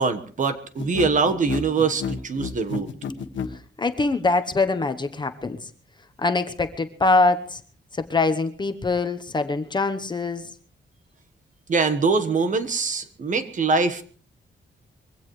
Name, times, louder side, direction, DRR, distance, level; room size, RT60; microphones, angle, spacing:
voice 1, 0.0-2.9 11.7-14.0, right 4 dB, 45° right, 11 dB, 1.3 m, -23 dB
sound 1, 0.8-3.6, left 6 dB, 85° left, 1.3 m, -30 dB
voice 2, 3.5-5.7 6.2-7.6 7.9-10.5, left 3 dB, 25° left, 8 dB, 1.0 m, -23 dB
23.0 x 16.5 x 3.2 m, 0.42 s
wide cardioid pair, 165°, 19 cm